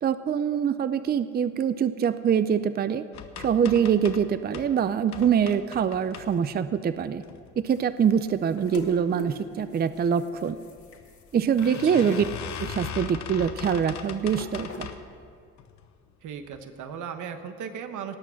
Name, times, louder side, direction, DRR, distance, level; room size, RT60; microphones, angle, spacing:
voice 1, 0.0-3.0 3.4-7.2 7.6-10.6 11.3-12.2 12.6-14.9, right 7 dB, 35° right, 13 dB, 0.4 m, -24 dB
sound 1, 3.1-4.7 5.1-6.7 7.2-7.8 8.2-8.7 8.9-9.0 9.3-9.4 10.4-10.6 10.9-11.0 11.6-15.1 15.6-16.0 16.5-16.6 16.9-17.0, left 8 dB, 65° left, 1.0 m, -39 dB
sound 2, 5.9-15.4, left 2 dB, 50° left, 1.9 m, -45 dB
voice 2, 11.8-12.2 16.2-18.1, right 7 dB, 80° right, 7 dB, 1.1 m, -37 dB
18.5 x 6.2 x 7.0 m, 2.4 s
cardioid pair, 90°, 30 cm